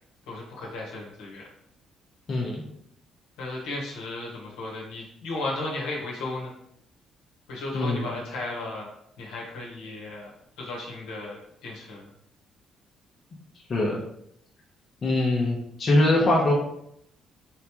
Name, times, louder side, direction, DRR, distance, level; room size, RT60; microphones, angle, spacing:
voice 1, 0.3-1.5 3.4-6.5 7.5-8.9 9.2-10.3 10.6-12.1, left 2 dB, 75° left, -3 dB, 1.2 m, -35 dB
voice 2, 2.3-2.6 7.7-8.1 13.7-14.0 15.0-16.5, left 2 dB, 45° left, -3 dB, 1.0 m, -22 dB
3.7 x 3.3 x 3.0 m, 0.73 s
hypercardioid pair, 50°, 0 cm